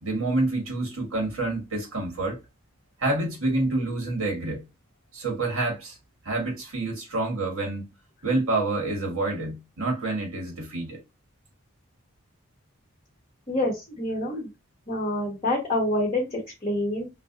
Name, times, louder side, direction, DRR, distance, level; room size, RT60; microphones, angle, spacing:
voice 1, 0.0-2.4 3.0-4.6 5.1-6.0 6.2-7.8 8.2-11.0, right 2 dB, 90° right, 1.4 m, -27 dB
voice 2, 13.5-14.5 14.9-17.1, left 1 dB, 30° left, 1.1 m, -27 dB
3.2 x 2.0 x 3.8 m
head